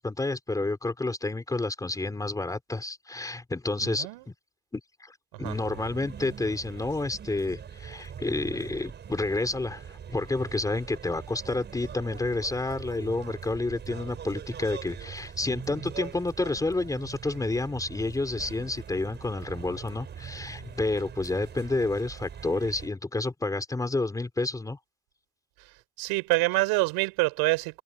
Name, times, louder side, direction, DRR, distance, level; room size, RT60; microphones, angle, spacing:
voice 1, 0.0-4.1 4.7-24.8, left 2 dB, 5° left, 3.7 m, -30 dB
voice 2, 3.8-4.3 5.4-5.5 26.0-27.8, right 24 dB, 50° right, 5.3 m, -26 dB
sound 1, 5.4-22.9, right 8 dB, 20° right, 6.2 m, -42 dB
open air
cardioid pair, 170°, 48 cm